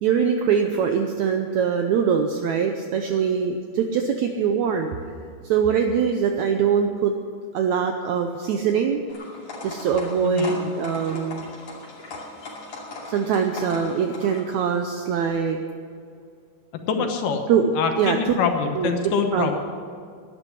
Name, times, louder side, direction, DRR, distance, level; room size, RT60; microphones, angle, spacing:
voice 1, 0.0-4.9 5.4-7.1 7.5-9.0 9.6-11.4 13.1-15.6 17.0-17.1 17.5-18.2 18.7-18.9 19.3-19.6, right 7 dB, 75° right, 5 dB, 1.8 m, -23 dB
sound 1, 9.1-14.4, left 2 dB, 50° left, 3.6 m, -38 dB
voice 2, 10.2-10.5 16.9-17.4 17.8-19.6, left 6 dB, 75° left, 5 dB, 2.7 m, -25 dB
11.5 x 10.0 x 9.9 m, 2.2 s
omnidirectional pair, 3.9 m